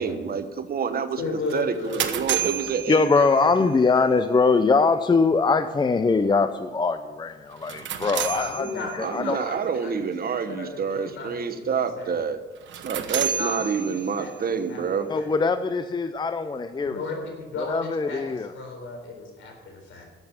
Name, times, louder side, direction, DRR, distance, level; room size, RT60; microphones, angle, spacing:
voice 1, 0.0-1.2 1.5-3.1 9.0-12.4 12.8-15.1, right 6 dB, 50° right, 9 dB, 1.2 m, -28 dB
voice 2, 1.2-2.1 3.1-3.6 8.3-12.2 13.1-14.8 15.1-15.3 16.8-20.0, left 3 dB, 75° left, 3 dB, 3.9 m, -35 dB
sound 1, 1.5-3.7 7.5-9.2 12.6-14.4, right 10 dB, 70° right, 1.2 m, -31 dB
voice 3, 2.9-8.7 9.1-9.4 15.1-17.0 17.7-18.5, left 4 dB, 20° left, 11 dB, 0.6 m, -22 dB
12.0 x 8.1 x 7.1 m, 1.3 s
cardioid pair, 90°, 20 cm